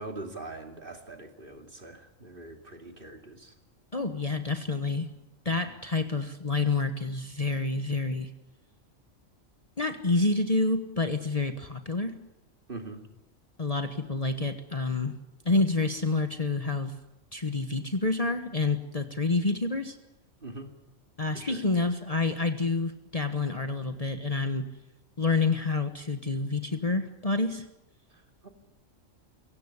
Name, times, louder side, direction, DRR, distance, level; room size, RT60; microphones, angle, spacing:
voice 1, 0.0-3.5 5.5-5.7 12.7-13.0 20.4-20.7 21.3-21.6 28.1-28.5, right 2 dB, 40° right, 4 dB, 2.7 m, -43 dB
voice 2, 3.9-5.1 5.4-8.3 9.8-12.2 13.6-15.1 15.4-16.9 17.3-20.0 21.2-24.7 25.2-27.7, left 3 dB, 30° left, 7 dB, 1.3 m, -28 dB
23.5 x 17.5 x 9.9 m, 0.94 s
omnidirectional pair, 1.3 m